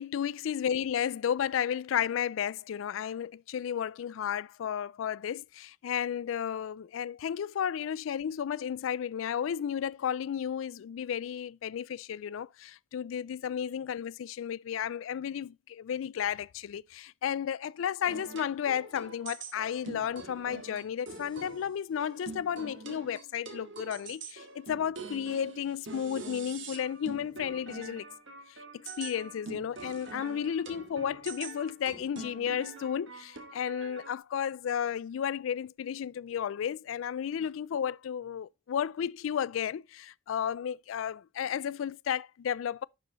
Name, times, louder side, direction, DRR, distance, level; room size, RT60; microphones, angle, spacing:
voice 1, 0.0-28.1 28.7-42.8, left 8 dB, 80° left, 0.3 m, -33 dB
sound 1, 18.0-34.2, right 3 dB, 65° right, 1.9 m, -45 dB
11.5 x 4.9 x 3.9 m
head